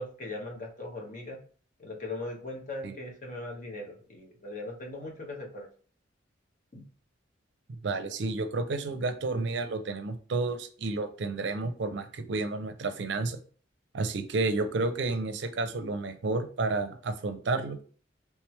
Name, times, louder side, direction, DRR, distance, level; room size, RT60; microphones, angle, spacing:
voice 1, 0.0-1.4 1.8-5.7 6.7-6.8, left 2 dB, 40° left, 1 dB, 0.8 m, -39 dB
voice 2, 7.8-13.4 13.9-17.8, right 3 dB, 65° right, 8 dB, 0.5 m, -31 dB
3.3 x 3.2 x 3.2 m, 0.42 s
head